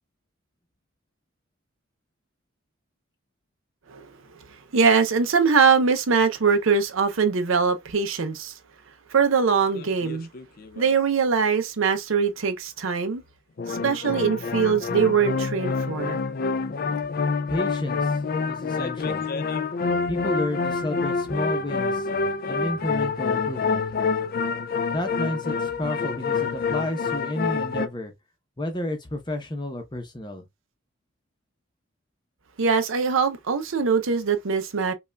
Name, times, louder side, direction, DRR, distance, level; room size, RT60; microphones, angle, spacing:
voice 1, 4.7-8.5 9.1-10.3 10.8-13.2 13.7-16.2 32.6-34.9, right 5 dB, 65° right, 0.5 m, -22 dB
sound 1, 9.7-10.9 13.6-27.9, left 4 dB, 45° left, 0.3 m, -27 dB
voice 2, 17.5-18.2 18.4-19.2 20.1-22.1 22.5-23.8 24.9-28.1 28.6-30.4, left 1 dB, 20° left, 0.7 m, -31 dB
5.3 x 2.3 x 2.2 m
head